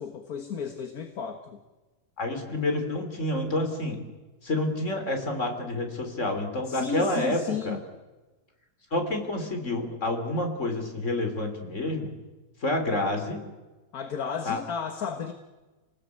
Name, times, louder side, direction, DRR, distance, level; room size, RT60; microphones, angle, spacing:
voice 1, 0.0-1.6 6.7-7.8 13.9-15.3, left 6 dB, 60° left, 7 dB, 1.9 m, -33 dB
voice 2, 2.2-4.0 4.4-7.4 7.6-7.8 8.9-12.1 12.6-13.4 14.5-14.6, left 1 dB, 45° left, 5 dB, 4.0 m, -28 dB
29.5 x 19.0 x 8.5 m, 1.2 s
omnidirectional pair, 1.7 m